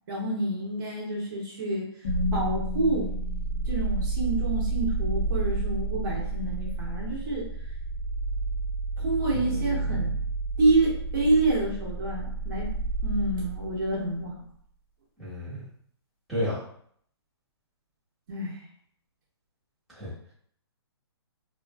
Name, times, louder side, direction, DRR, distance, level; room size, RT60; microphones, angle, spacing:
voice 1, 0.1-1.9 2.3-3.1 3.7-7.5 9.0-10.1 10.6-12.7 13.0-14.4 18.3-18.6, right 2 dB, 50° right, -4 dB, 1.0 m, -27 dB
sound 1, 2.0-14.1, right 3 dB, 50° left, 1.1 m, -30 dB
voice 2, 9.3-10.0 15.2-15.6 16.3-16.6 19.9-20.1, left 1 dB, ahead, -12 dB, 1.4 m, -32 dB
2.8 x 2.6 x 2.3 m, 0.62 s
hypercardioid pair, 150°, 14 cm